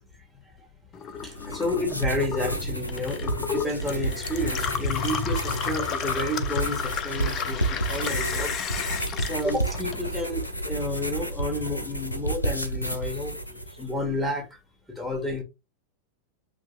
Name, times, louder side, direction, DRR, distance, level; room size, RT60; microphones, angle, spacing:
Gurgling / Water tap faucet / Sink (filling or washing), 0.9-10.5 10.8-11.6, left 7 dB, 30° left, 0.5 m, -33 dB
sound 1, 1.2-13.9, right 2 dB, 85° left, 0.6 m, -31 dB
voice 1, 1.2-14.6 14.9-15.4, left 1 dB, 5° left, 1.7 m, -31 dB
8.0 x 2.8 x 2.3 m
figure-of-eight pair, 90°, 0 cm